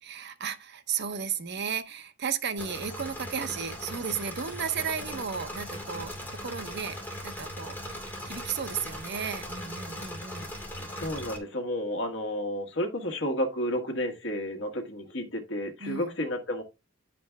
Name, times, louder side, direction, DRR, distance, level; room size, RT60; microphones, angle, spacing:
voice 1, 0.0-7.8 8.2-10.5 15.8-16.2, right 6 dB, 55° right, 0.9 m, -34 dB
Engine / Mechanisms, 2.6-11.4, equal, 10° left, 2.3 m, -39 dB
voice 2, 10.8-16.6, equal, 60° left, 1.6 m, -31 dB
10.5 x 5.2 x 3.4 m
head